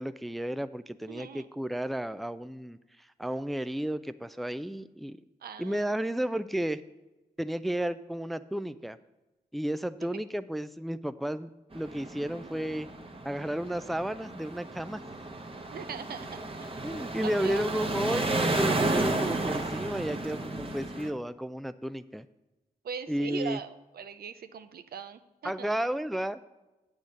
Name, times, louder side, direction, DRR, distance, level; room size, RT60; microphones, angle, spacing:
voice 1, 0.0-5.2 5.6-6.8 7.4-9.0 9.5-11.5 11.7-12.9 13.2-15.0 16.8-22.3 23.1-23.6 25.4-26.5, right 1 dB, ahead, 13 dB, 0.4 m, -32 dB
voice 2, 1.1-1.5 5.4-5.9 15.7-17.6 22.8-25.7, right 7 dB, 70° right, 10 dB, 0.6 m, -41 dB
sound 1, 11.7-21.1, right 2 dB, 35° right, 1.2 m, -32 dB
8.5 x 6.3 x 5.2 m, 1.0 s
supercardioid pair, 40°, 16 cm